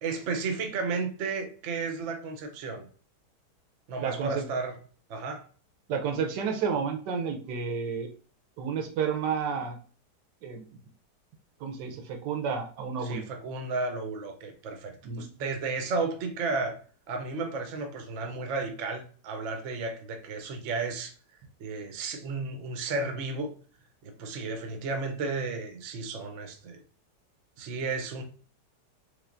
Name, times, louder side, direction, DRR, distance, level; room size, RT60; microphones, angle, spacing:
voice 1, 0.0-2.8 3.9-4.8 5.1-5.4 13.0-16.8 17.1-21.1 21.6-23.5 24.0-26.8 27.6-28.2, right 3 dB, 60° right, 5 dB, 0.8 m, -33 dB
voice 2, 4.0-4.5 5.9-8.1 8.6-9.8 10.4-10.6 11.6-13.3 15.0-15.2, right 6 dB, 85° right, 5 dB, 1.3 m, -31 dB
3.4 x 3.1 x 2.5 m, 0.41 s
omnidirectional pair, 1.8 m